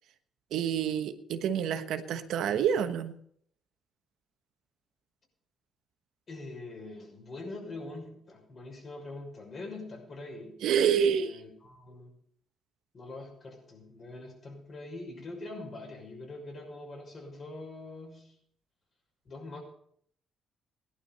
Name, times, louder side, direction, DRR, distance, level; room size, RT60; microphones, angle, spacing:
voice 1, 0.5-3.1 10.6-11.4, right 8 dB, 80° right, 8 dB, 1.2 m, -28 dB
voice 2, 6.3-12.1 12.9-18.4 19.2-19.6, left 2 dB, 45° left, 2 dB, 6.1 m, -44 dB
17.0 x 11.5 x 5.4 m, 0.65 s
cardioid pair, 90°, 0 cm